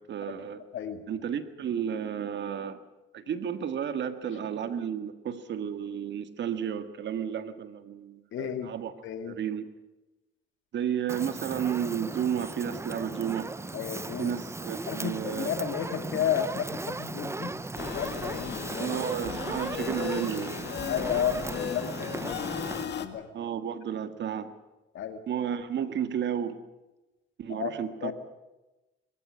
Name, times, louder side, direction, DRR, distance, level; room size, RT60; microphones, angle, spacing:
voice 1, 0.0-0.6 1.1-2.8 3.1-8.9 9.2-9.7 10.7-13.5 14.2-15.7 18.8-20.6 23.3-24.5 25.3-26.6 27.4-28.1, right 8 dB, 65° right, 11 dB, 1.8 m, -32 dB
voice 2, 8.3-8.7 9.0-9.4 13.7-14.3 14.9-19.0 20.9-23.3 24.9-25.2 27.5-27.7 28.0-28.1, left 9 dB, 75° left, 8 dB, 2.4 m, -33 dB
Fire, 11.1-22.8, right 2 dB, 15° right, 0.7 m, -37 dB
sound 1, 17.8-23.1, left 7 dB, 60° left, 1.9 m, -36 dB
22.5 x 15.0 x 9.9 m, 1.1 s
cardioid pair, 90°, 20 cm